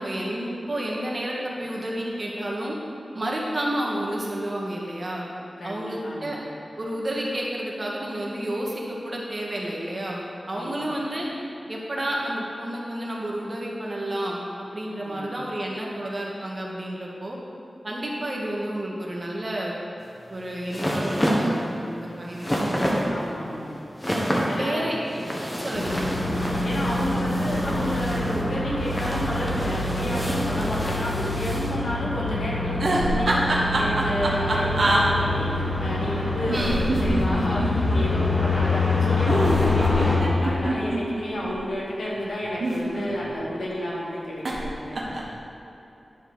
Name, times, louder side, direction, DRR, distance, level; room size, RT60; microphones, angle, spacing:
voice 1, 0.0-2.8 3.1-5.2 5.6-6.4 6.8-11.3 11.7-17.4 17.8-19.7 20.3-22.6 23.0-23.2 24.5-25.3 25.6-26.0 36.5-36.9, right 1 dB, 45° right, -3 dB, 1.7 m, -30 dB
voice 2, 5.6-6.4 10.5-10.9 15.0-15.3 23.1-23.7 24.4-24.9 25.4-25.7 26.6-45.0, left 1 dB, 85° left, -6 dB, 2.1 m, -31 dB
sound 1, 20.0-31.7, equal, 15° left, 1.6 m, -29 dB
sound 2, 25.7-40.2, left 2 dB, 65° left, 1.9 m, -26 dB
sound 3, 32.7-35.0 36.5-38.0 39.3-41.6 42.4-43.4 44.5-44.7 44.9-45.4, right 2 dB, 70° right, 1.3 m, -25 dB
10.5 x 4.5 x 6.3 m, 3.0 s
wide cardioid pair, 60°, 0 cm